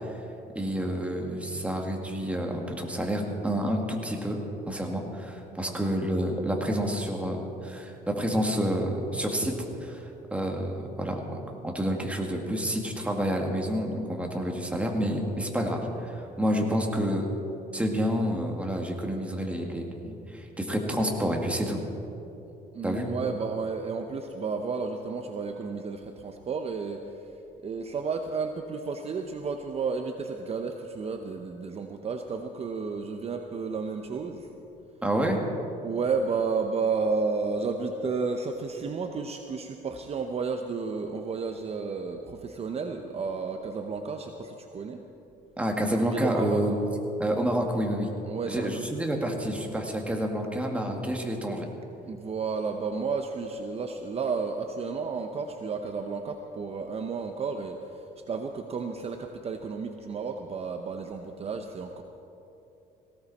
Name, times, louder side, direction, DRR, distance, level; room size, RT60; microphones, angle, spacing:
voice 1, 0.6-4.4 4.7-9.5 9.8-10.0 10.3-17.3 17.7-21.8 22.8-23.1 35.0-35.5 45.6-46.8 47.2-48.1 48.4-51.7, equal, 5° right, 1 dB, 2.1 m, -29 dB
voice 2, 22.7-27.3 27.6-34.5 35.8-45.0 46.1-46.7 48.3-48.7 52.0-62.0, right 4 dB, 35° right, 5 dB, 0.9 m, -32 dB
18.5 x 17.0 x 4.2 m, 2.9 s
cardioid pair, 110°, 17 cm